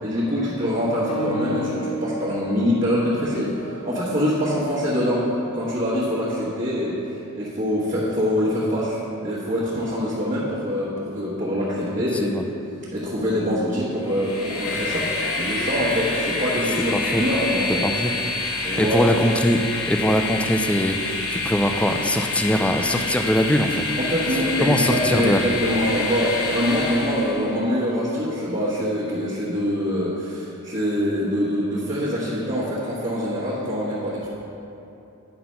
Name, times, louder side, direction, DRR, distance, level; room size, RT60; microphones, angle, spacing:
voice 1, 0.0-5.2 5.5-12.3 12.9-17.8 18.6-19.1 24.0-34.3, equal, 35° right, -11 dB, 1.6 m, -24 dB
sound 1, 1.1-11.3 12.3-12.4 13.1-13.2, right 1 dB, 90° left, 1.1 m, -37 dB
Train, 14.0-27.5, left 3 dB, 70° left, 1.0 m, -28 dB
voice 2, 16.9-17.2 17.8-18.1 18.8-19.6 19.9-23.8 24.6-25.6, equal, 5° left, 5 dB, 0.3 m, -21 dB
9.4 x 4.0 x 5.7 m, 2.9 s
head